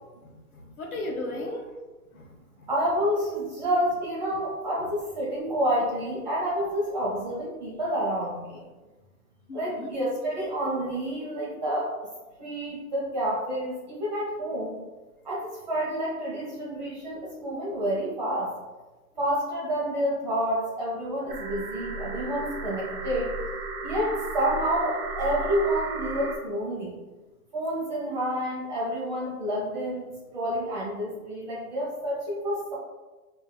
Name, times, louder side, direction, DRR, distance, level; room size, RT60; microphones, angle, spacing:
voice 1, 0.2-1.7 2.1-2.3 2.6-2.7 9.5-9.9, left 2 dB, 65° left, 2 dB, 0.8 m, -36 dB
voice 2, 2.7-8.6 9.5-11.9 12.4-14.8 15.2-18.5 19.2-23.3 23.8-27.0 27.5-32.7, equal, 30° right, -5 dB, 0.8 m, -29 dB
sound 1, 21.3-26.4, right 2 dB, 75° right, 1.0 m, -34 dB
4.8 x 2.6 x 2.2 m, 1.2 s
hypercardioid pair, 175°, 46 cm